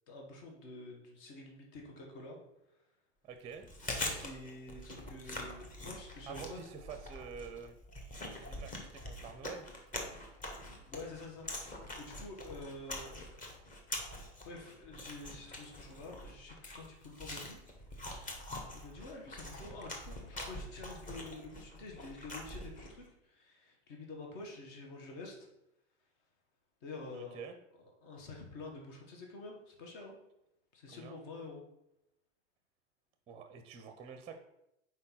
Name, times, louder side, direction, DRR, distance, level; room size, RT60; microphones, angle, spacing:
voice 1, 0.1-2.4 4.2-6.7 10.9-13.5 14.4-17.6 18.1-25.5 26.8-27.4 27.8-30.2 30.7-31.6, left 2 dB, 55° left, 1 dB, 1.8 m, -48 dB
voice 2, 3.2-3.7 6.3-7.8 8.3-9.7 27.1-27.5 30.9-31.1 33.3-34.4, right 6 dB, 20° right, 7 dB, 0.5 m, -47 dB
Chewing mastication, 3.5-23.0, left 1 dB, 25° left, 1.3 m, -44 dB
4.5 x 4.3 x 5.6 m, 0.85 s
hypercardioid pair, 120°, 34 cm